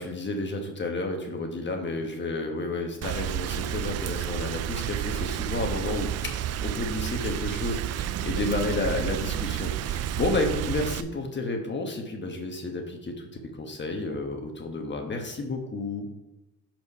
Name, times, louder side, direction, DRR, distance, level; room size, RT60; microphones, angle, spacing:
voice 1, 0.0-6.3 6.6-13.3 13.6-16.1, left 2 dB, 40° left, 3 dB, 1.3 m, -31 dB
Rain, 3.0-11.0, right 11 dB, 55° right, 0.4 m, -30 dB
7.0 x 4.5 x 5.5 m, 0.97 s
cardioid pair, 90°, 30 cm